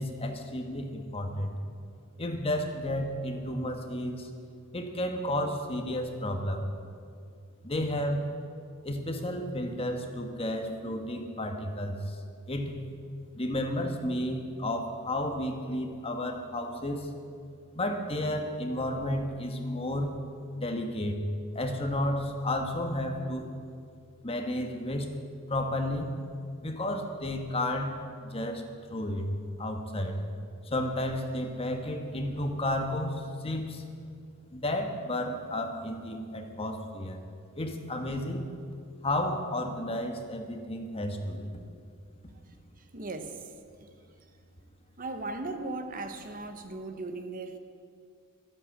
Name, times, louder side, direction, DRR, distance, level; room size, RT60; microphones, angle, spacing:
voice 1, 0.0-1.5 2.2-4.3 4.7-6.6 7.6-8.2 8.8-12.2 12.5-12.7 13.3-17.1 17.7-20.2 20.6-21.2 21.5-23.5 24.2-25.1 25.5-26.1 26.6-28.6 28.9-29.3 29.6-30.1 30.6-33.8 34.5-37.2 37.6-38.4 39.0-41.5, left 1 dB, 25° left, 4 dB, 1.3 m, -32 dB
voice 2, 42.8-43.5 43.8-43.9 45.0-47.6, right 2 dB, 40° right, 8 dB, 1.0 m, -37 dB
12.5 x 11.0 x 7.8 m, 2.3 s
head